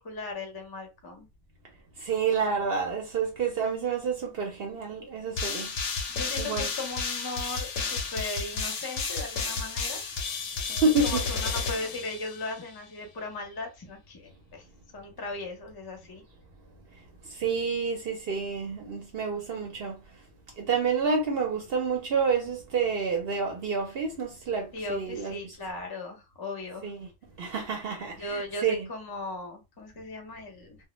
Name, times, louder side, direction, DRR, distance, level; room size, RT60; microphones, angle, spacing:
voice 1, 0.0-1.3 6.1-10.0 10.7-14.6 14.9-16.2 24.7-26.9 28.2-30.8, left 2 dB, 25° left, 0.5 m, -37 dB
voice 2, 2.0-5.7 6.4-6.7 10.8-11.2 17.4-19.9 20.6-25.5 26.8-27.1 27.4-28.9, right 5 dB, 65° right, 0.7 m, -29 dB
sound 1, 5.4-12.6, left 4 dB, 85° left, 0.9 m, -32 dB
2.1 x 2.1 x 3.0 m
omnidirectional pair, 1.2 m